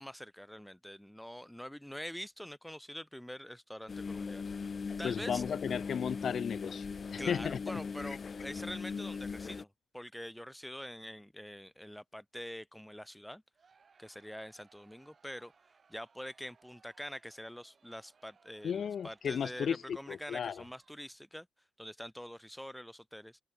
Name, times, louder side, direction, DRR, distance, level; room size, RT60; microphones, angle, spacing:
voice 1, 0.0-5.4 7.1-13.4 14.0-15.5 15.9-21.5 21.8-23.4, equal, 5° left, 1.1 m, -45 dB
sound 1, 3.9-9.6, left 5 dB, 35° left, 1.1 m, -39 dB
voice 2, 5.0-6.9 7.1-7.6 18.6-20.6, left 7 dB, 55° left, 1.1 m, -34 dB
Crowd, 13.5-21.3, right 5 dB, 40° right, 5.8 m, -67 dB
cardioid pair, 90°, 0 cm